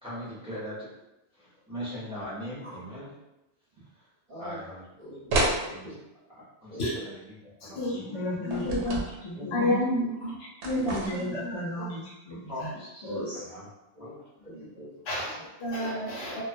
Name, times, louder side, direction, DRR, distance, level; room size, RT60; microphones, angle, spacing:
voice 1, 0.0-0.9 1.3-3.1 4.4-4.9 5.7-5.9 6.4-8.2 8.9-9.6 10.8-10.9 11.2-11.3 12.5-13.7 14.0-14.1, equal, 5° right, -9 dB, 0.7 m, -41 dB
voice 2, 4.3-4.6 5.0-6.0 6.7-6.8 7.6-7.8 10.2-10.3 10.7-11.0 13.9-15.2 15.7-15.8, equal, 40° right, -8 dB, 0.7 m, -45 dB
sound 1, 5.3-5.6 8.5-9.1 10.6-11.4, right 2 dB, 90° right, 0.9 m, -28 dB
voice 3, 7.9-9.8 10.8-12.4 13.0-13.4 15.4-15.5, left 1 dB, 55° left, -7 dB, 0.4 m, -35 dB
voice 4, 8.5-9.0 9.5-10.3 10.6-11.3 15.1-15.3 15.6-16.4, left 1 dB, 70° left, -4 dB, 1.0 m, -29 dB
2.3 x 2.1 x 2.5 m, 0.94 s
omnidirectional pair, 1.1 m